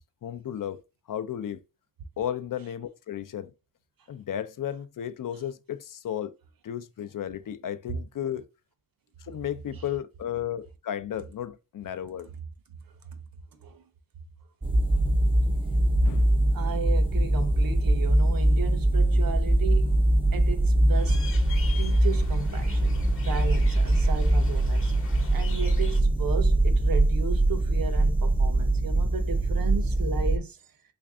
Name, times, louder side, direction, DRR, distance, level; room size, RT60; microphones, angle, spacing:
voice 1, 0.2-0.8 1.1-1.6 2.2-3.5 4.1-6.4 6.6-8.4 9.2-12.3 16.0-16.3, left 10 dB, 65° left, 0.5 m, -34 dB
voice 2, 13.5-13.8 16.5-20.0 20.3-21.2 21.5-24.9 25.3-30.6, right 5 dB, 70° right, 0.7 m, -35 dB
sound 1, 14.6-30.4, right 1 dB, 15° right, 0.4 m, -23 dB
sound 2, 20.9-26.0, left 5 dB, 35° left, 0.8 m, -44 dB
3.3 x 2.5 x 3.5 m
wide cardioid pair, 75°, 35 cm